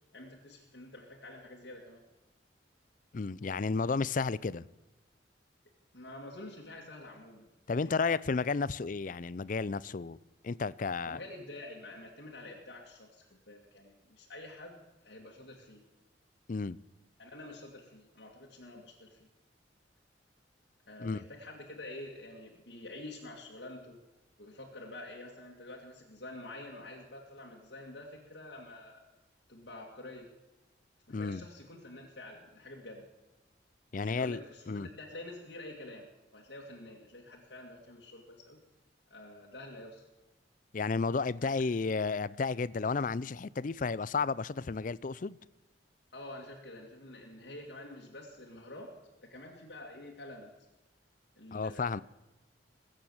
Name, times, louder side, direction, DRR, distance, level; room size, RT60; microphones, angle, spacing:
voice 1, 0.1-2.0 5.9-7.9 11.1-14.8 15.0-15.8 17.2-19.3 20.9-24.0 24.4-29.0 29.5-30.3 31.1-33.1 34.0-36.1 36.3-38.6 39.1-40.1 46.1-48.9 49.2-50.5 51.4-51.9, left 1 dB, 65° left, 2.4 m, -48 dB
voice 2, 3.1-4.6 7.7-10.2 10.4-11.2 16.5-16.8 21.0-21.2 31.1-31.4 33.9-34.9 40.7-45.4 51.5-52.0, left 4 dB, 45° left, 0.5 m, -32 dB
21.5 x 9.0 x 7.3 m
head